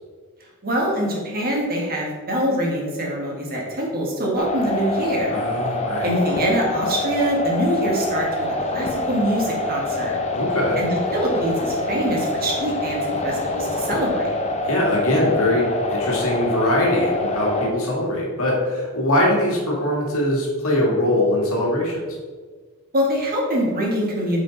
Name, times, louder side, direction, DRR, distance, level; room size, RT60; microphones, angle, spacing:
voice 1, 0.6-5.4 6.0-8.3 8.7-10.2 10.8-14.3 22.9-24.4, equal, 40° right, -2 dB, 1.9 m, -24 dB
sound 1, 4.4-17.7, left 2 dB, 30° left, 0.8 m, -25 dB
voice 2, 5.3-6.1 10.3-10.8 14.7-22.0, left 1 dB, 65° left, -2 dB, 2.2 m, -22 dB
9.1 x 5.1 x 4.1 m, 1.5 s
head